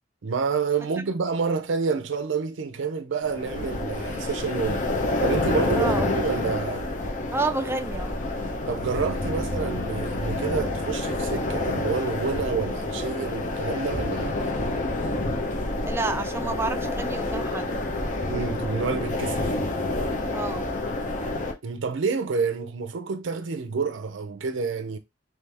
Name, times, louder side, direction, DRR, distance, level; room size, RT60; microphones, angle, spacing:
voice 1, 0.2-4.9 5.2-6.9 8.7-14.4 18.3-19.6 21.6-25.0, right 5 dB, 70° right, 0.5 m, -28 dB
sound 1, 3.2-21.5, left 2 dB, 40° left, 0.7 m, -28 dB
voice 2, 5.7-6.1 7.3-8.2 15.8-17.7 20.3-20.7, right 3 dB, 10° right, 0.4 m, -29 dB
sound 2, 8.6-20.0, left 1 dB, 65° left, 1.2 m, -40 dB
3.3 x 3.1 x 3.4 m
head